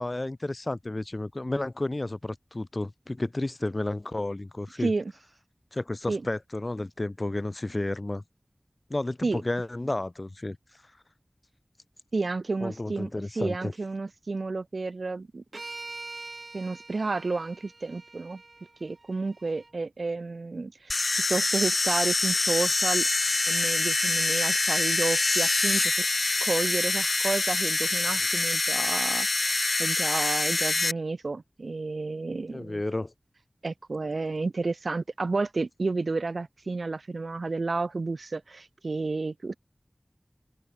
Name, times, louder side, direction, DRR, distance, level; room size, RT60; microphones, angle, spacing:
voice 1, 0.0-4.9 5.7-8.2 8.9-10.6 12.6-13.7 32.5-33.1, left 2 dB, 45° left, 1.9 m, -32 dB
voice 2, 4.8-5.1 6.1-6.2 9.2-9.4 12.1-13.1 13.3-15.4 16.5-18.4 18.8-20.9 21.3-23.1 23.5-26.0 26.4-32.8 33.6-39.6, right 3 dB, 85° right, 1.0 m, -31 dB
sound 1, 15.5-19.7, right 3 dB, 70° right, 3.0 m, -44 dB
sound 2, 20.9-30.9, left 3 dB, 70° left, 1.1 m, -25 dB
wide cardioid pair, 45°, 0 cm